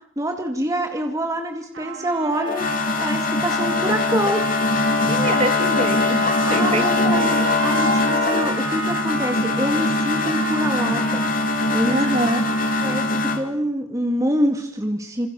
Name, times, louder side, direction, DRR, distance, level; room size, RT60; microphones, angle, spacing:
voice 1, 0.2-2.7 3.0-4.5 6.5-11.2 11.7-12.0 12.8-15.3, right 1 dB, 15° right, 4 dB, 2.3 m, -25 dB
sound 1, 1.7-13.4, right 6 dB, 70° right, 7.5 m, -32 dB
sound 2, 2.3-13.4, left 3 dB, 45° left, 3.1 m, -22 dB
voice 2, 5.1-7.3 11.9-12.4, right 1 dB, 35° right, 7 dB, 2.8 m, -25 dB
28.5 x 27.5 x 7.1 m, 0.69 s
head